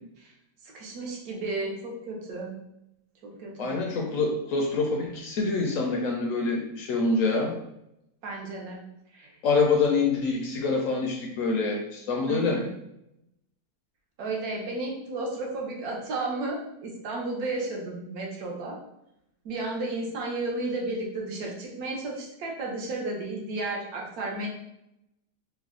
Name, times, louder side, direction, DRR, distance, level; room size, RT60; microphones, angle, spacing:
voice 1, 0.6-2.6 3.2-3.8 8.2-8.8 9.1-9.4 12.3-12.7 14.2-18.8 19.4-24.5, right 2 dB, 70° right, 0 dB, 1.2 m, -33 dB
voice 2, 3.6-7.6 9.4-12.6, left 3 dB, 70° left, 1 dB, 0.8 m, -26 dB
3.3 x 2.1 x 3.6 m, 0.81 s
omnidirectional pair, 1.7 m